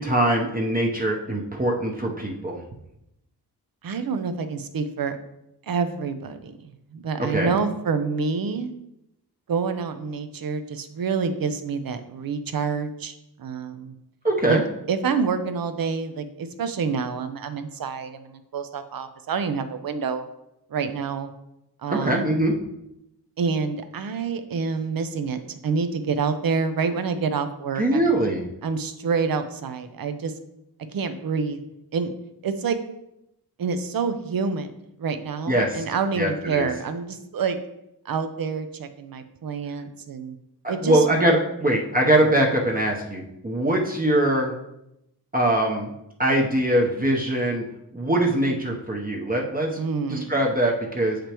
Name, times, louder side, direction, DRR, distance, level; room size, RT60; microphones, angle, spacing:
voice 1, 0.0-2.6 7.2-7.5 14.2-14.6 21.9-22.6 27.8-28.4 35.5-35.8 36.2-36.7 40.6-44.5 45.3-45.9 46.2-47.7 47.9-49.8 50.1-51.2, right 1 dB, 20° right, -1 dB, 0.8 m, -22 dB
voice 2, 3.8-5.2 5.6-8.7 9.5-13.9 14.5-14.6 14.9-20.2 20.7-21.3 21.8-22.2 23.4-28.1 28.6-30.3 30.9-31.6 31.9-32.1 32.4-32.8 33.6-34.7 35.0-37.6 38.0-40.4 40.7-41.0 49.8-50.3, right 5 dB, 60° right, 9 dB, 0.7 m, -27 dB
7.6 x 5.0 x 3.0 m, 0.84 s
wide cardioid pair, 105°, 39 cm